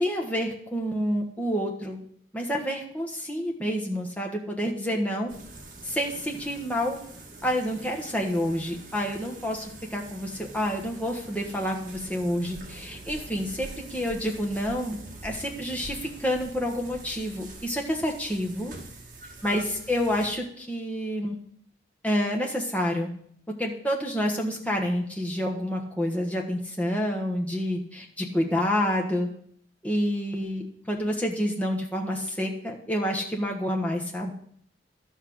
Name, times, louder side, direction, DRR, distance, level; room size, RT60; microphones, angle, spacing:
voice 1, 0.0-2.0 2.3-5.3 5.8-7.0 7.4-15.0 15.2-18.7 19.4-21.4 22.0-23.1 23.5-29.3 29.8-34.3, equal, 10° left, -1 dB, 1.4 m, -28 dB
sound 1, 5.3-20.3, right 2 dB, 45° right, 2.0 m, -44 dB
12.5 x 5.8 x 6.3 m, 0.64 s
head